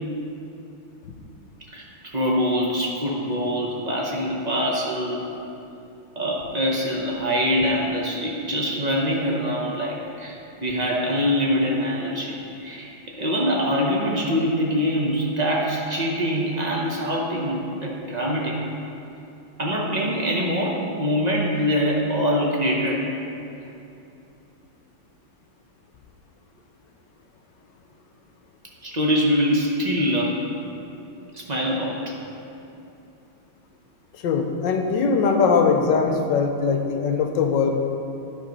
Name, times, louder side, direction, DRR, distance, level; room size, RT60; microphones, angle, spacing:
voice 1, 1.7-5.3 6.2-18.6 19.6-23.1 28.8-30.4 31.3-32.1 35.3-35.4, equal, 65° right, -3 dB, 0.4 m, -24 dB
voice 2, 34.1-37.8, left 5 dB, 70° left, 4 dB, 1.3 m, -21 dB
11.5 x 4.2 x 5.2 m, 2.8 s
omnidirectional pair, 2.2 m